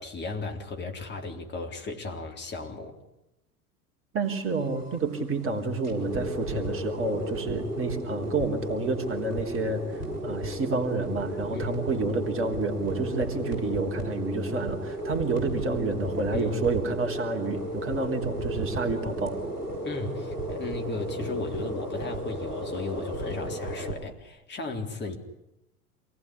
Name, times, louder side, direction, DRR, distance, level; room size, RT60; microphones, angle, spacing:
voice 1, 0.0-3.0 11.5-11.8 16.3-16.5 19.8-25.2, left 3 dB, 25° left, 2 dB, 3.8 m, -35 dB
voice 2, 4.1-19.4, right 3 dB, 30° right, 5 dB, 3.5 m, -29 dB
sound 1, 4.2-23.9, right 1 dB, 85° left, 6.7 m, -34 dB
27.5 x 18.5 x 9.9 m, 0.94 s
figure-of-eight pair, 80°, 45 cm